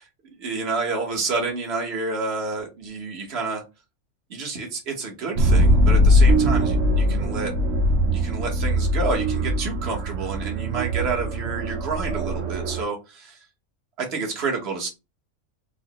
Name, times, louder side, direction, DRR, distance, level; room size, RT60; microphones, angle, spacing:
voice 1, 0.4-3.6 4.3-7.5 8.1-13.4 14.0-14.9, right 4 dB, 50° right, 1.3 m, -29 dB
sound 1, 5.4-12.8, equal, 70° right, 1.0 m, -21 dB
4.7 x 2.1 x 2.9 m
omnidirectional pair, 1.5 m